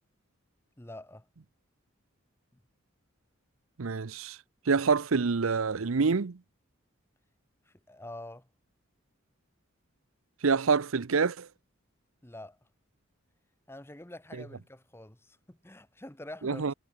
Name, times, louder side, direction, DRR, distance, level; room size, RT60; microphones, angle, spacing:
voice 1, 0.8-1.3 7.7-8.5 12.2-12.6 13.7-16.6, left 1 dB, 10° left, 1.0 m, -46 dB
voice 2, 3.8-4.4 4.7-6.4 10.4-11.5 16.4-16.7, right 5 dB, 80° right, 0.7 m, -26 dB
head